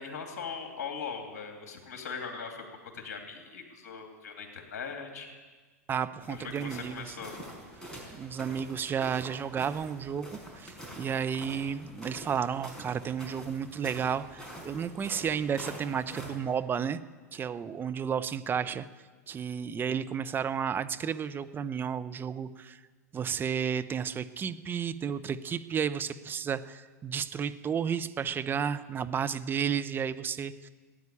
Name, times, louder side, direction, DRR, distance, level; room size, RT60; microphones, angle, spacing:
voice 1, 0.0-2.6 2.9-5.3 6.3-7.3, left 5 dB, 60° left, 3 dB, 3.0 m, -40 dB
voice 2, 5.9-7.2 8.2-17.0 17.3-18.9 19.3-22.8 23.1-30.7, right 7 dB, 25° right, 10 dB, 0.7 m, -32 dB
sound 1, 6.2-16.3, right 1 dB, 5° left, 5.6 m, -46 dB
16.5 x 9.6 x 8.5 m, 1.4 s
hypercardioid pair, 90°, 9 cm